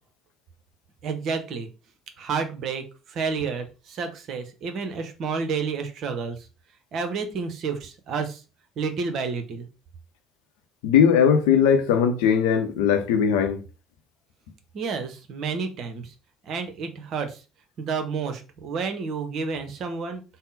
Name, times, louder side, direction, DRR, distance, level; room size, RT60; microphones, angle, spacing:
voice 1, 1.0-1.7 2.2-6.4 6.9-8.4 8.8-9.7 14.7-16.1 16.5-17.4 17.8-20.2, right 5 dB, 50° right, 0.7 m, -30 dB
voice 2, 10.8-13.6, left 7 dB, 65° left, 0.5 m, -19 dB
3.6 x 2.1 x 3.8 m
figure-of-eight pair, 55°, 0 cm